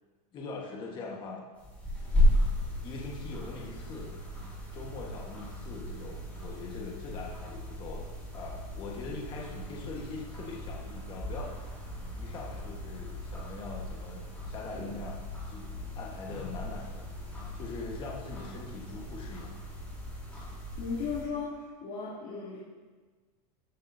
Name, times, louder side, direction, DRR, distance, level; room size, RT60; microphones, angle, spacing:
voice 1, 0.3-1.4 2.8-4.5 4.7-11.5 12.2-19.5, left 3 dB, 25° left, -2 dB, 1.4 m, -42 dB
sound 1, 1.6-21.2, equal, 5° left, 3.5 m, -35 dB
voice 2, 20.8-22.6, left 5 dB, 45° left, -8 dB, 2.8 m, -36 dB
13.5 x 10.5 x 2.7 m, 1.4 s
supercardioid pair, 170°, 20 cm